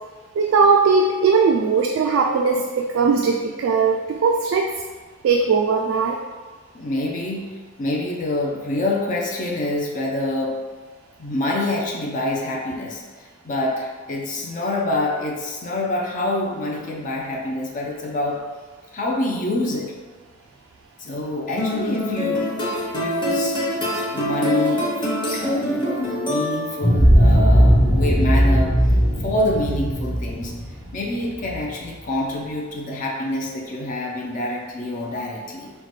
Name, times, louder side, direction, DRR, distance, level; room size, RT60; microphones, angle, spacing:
voice 1, 0.4-4.7 5.2-6.2, right 5 dB, 70° right, 1 dB, 0.3 m, -19 dB
voice 2, 6.7-10.6 11.2-18.4 18.9-19.9 21.0-22.5 22.9-23.6 24.1-24.9 25.3-28.8 29.2-30.5 30.9-35.7, left 1 dB, 40° left, -1 dB, 0.5 m, -26 dB
sound 1, 21.6-27.0, left 1 dB, 25° left, 0.8 m, -25 dB
sound 2, 26.8-31.6, equal, 70° left, 1.0 m, -17 dB
5.4 x 2.2 x 3.1 m, 1.4 s
head